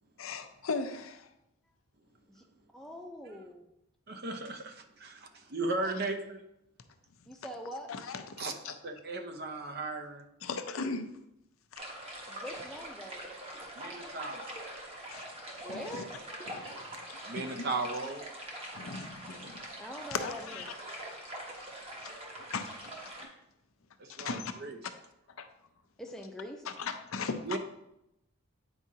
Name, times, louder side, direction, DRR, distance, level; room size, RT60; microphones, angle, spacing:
voice 1, 0.2-1.3 5.8-5.9 7.9-8.2 8.6-8.8 10.4-11.1 15.1-15.2 15.7-16.0 16.5-17.2 17.5-17.6 18.7-19.6 20.1-20.7 22.0-22.1 22.5-22.9 23.2-23.3 24.1-24.5 25.4-25.5 26.6-27.6, left 4 dB, 75° left, 8 dB, 0.6 m, -38 dB
voice 2, 2.7-3.6 7.3-7.9 12.3-13.3 15.6-16.1 19.8-20.5 26.0-26.6, equal, ahead, 2 dB, 0.6 m, -43 dB
voice 3, 4.1-6.4 8.4-10.3 13.8-14.5 17.3-18.2 24.0-24.8 27.4-27.6, right 3 dB, 45° right, 6 dB, 0.6 m, -36 dB
sound 1, 11.8-23.3, right 1 dB, 25° right, 1.1 m, -44 dB
8.8 x 4.8 x 2.8 m, 0.84 s
head